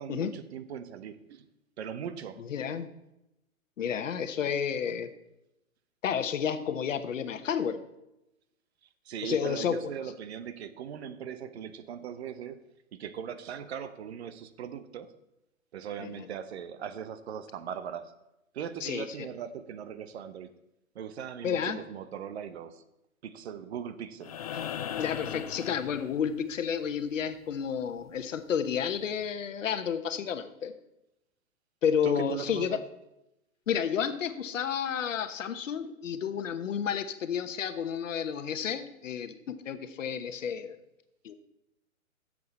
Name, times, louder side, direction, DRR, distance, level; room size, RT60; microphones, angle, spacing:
voice 1, 0.0-1.5 1.8-2.4 9.0-12.6 12.9-15.1 15.7-18.1 18.5-20.5 20.9-22.8 23.2-24.6 32.0-32.8, right 8 dB, 50° right, 0.9 m, -39 dB
voice 2, 2.5-2.9 3.8-5.1 6.0-7.8 9.2-9.8 16.0-16.3 18.8-19.1 21.4-21.8 25.0-30.7 31.8-32.8 33.7-40.8 41.2-41.3, left 7 dB, 65° left, 1.1 m, -31 dB
sound 1, 24.2-26.5 28.4-28.5, left 9 dB, 30° left, 0.4 m, -37 dB
13.0 x 7.7 x 4.2 m
hypercardioid pair, 125°, 41 cm